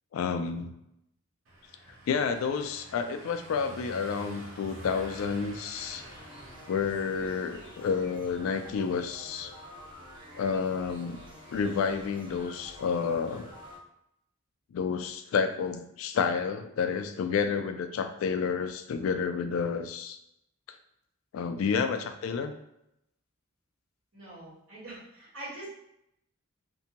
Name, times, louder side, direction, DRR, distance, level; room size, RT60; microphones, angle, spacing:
voice 1, 0.1-0.7 2.1-6.0 6.7-9.5 10.4-11.2 11.5-13.5 14.7-20.2 21.3-22.5, left 5 dB, 75° left, 8 dB, 0.3 m, -30 dB
Car passing by / Engine, 1.5-8.2, equal, 65° right, 0.6 m, -48 dB
sound 1, 5.8-13.8, equal, 25° right, 0.6 m, -49 dB
voice 2, 24.1-25.7, right 1 dB, 85° right, -7 dB, 1.4 m, -44 dB
2.6 x 2.1 x 2.8 m, 0.81 s
head